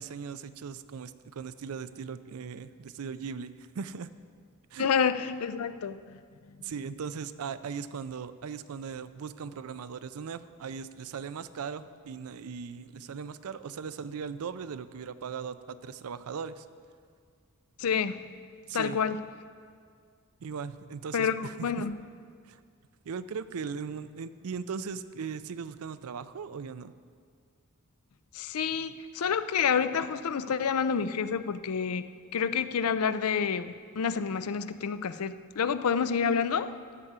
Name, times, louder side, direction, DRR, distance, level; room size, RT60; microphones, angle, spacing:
voice 1, 0.0-4.1 4.7-4.9 6.6-16.7 18.7-19.0 20.4-21.7 22.5-22.6 23.0-26.9, right 6 dB, 75° right, 14 dB, 0.4 m, -38 dB
voice 2, 4.8-6.2 6.5-6.6 17.8-18.3 18.7-19.2 21.1-22.0 28.3-32.0 32.3-36.7, left 6 dB, 80° left, 12 dB, 0.5 m, -28 dB
13.5 x 4.9 x 8.0 m, 2.1 s
head